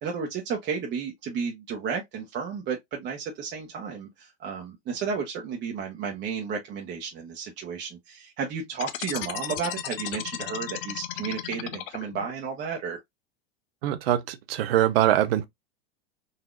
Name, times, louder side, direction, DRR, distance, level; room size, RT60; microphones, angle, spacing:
voice 1, 0.0-13.0, right 6 dB, 35° right, 1.0 m, -33 dB
sound 1, 8.7-12.3, left 12 dB, 60° left, 0.7 m, -34 dB
voice 2, 13.8-15.4, right 12 dB, 70° right, 0.8 m, -23 dB
4.1 x 2.7 x 2.4 m
hypercardioid pair, 100°, 31 cm